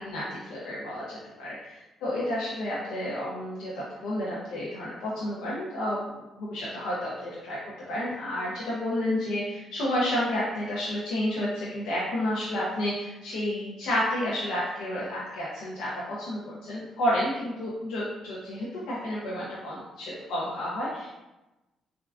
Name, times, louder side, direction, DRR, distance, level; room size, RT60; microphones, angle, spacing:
voice 1, 0.0-1.7 2.0-6.0 6.4-7.6 7.9-21.1, left 1 dB, 90° left, -7 dB, 0.6 m, -30 dB
3.5 x 2.2 x 2.3 m, 1.0 s
cardioid pair, 90°, 0 cm